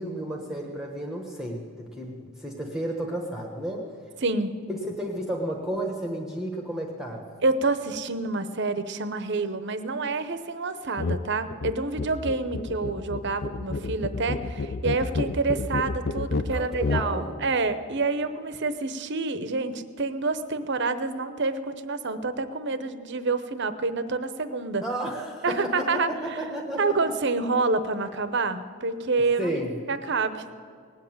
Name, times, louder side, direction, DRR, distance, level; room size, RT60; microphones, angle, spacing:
voice 1, 0.0-3.9 4.7-7.3 16.5-17.4 24.8-27.0 29.4-29.8, right 1 dB, ahead, 1 dB, 1.1 m, -32 dB
voice 2, 4.2-4.6 7.4-24.8 25.4-26.4 26.8-29.5 29.9-30.4, right 3 dB, 50° right, 12 dB, 0.8 m, -28 dB
sound 1, 11.0-11.2 11.5-17.1, left 3 dB, 45° left, 0.5 m, -30 dB
19.0 x 8.0 x 9.1 m, 2.2 s
head